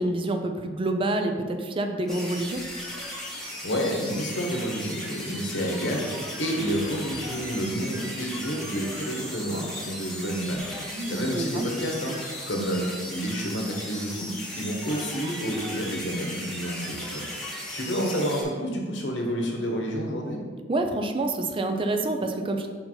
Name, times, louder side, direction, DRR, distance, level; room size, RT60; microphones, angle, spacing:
voice 1, 0.0-2.6 10.9-11.7 20.7-22.7, right 2 dB, 30° right, 5 dB, 0.5 m, -27 dB
sound 1, 2.1-18.4, equal, ahead, 1.2 m, -37 dB
voice 2, 3.6-6.1 6.4-10.7 11.1-12.8 13.1-17.3 17.7-20.4, equal, 90° left, 0 dB, 1.3 m, -29 dB
5.7 x 4.5 x 3.9 m, 1.5 s
head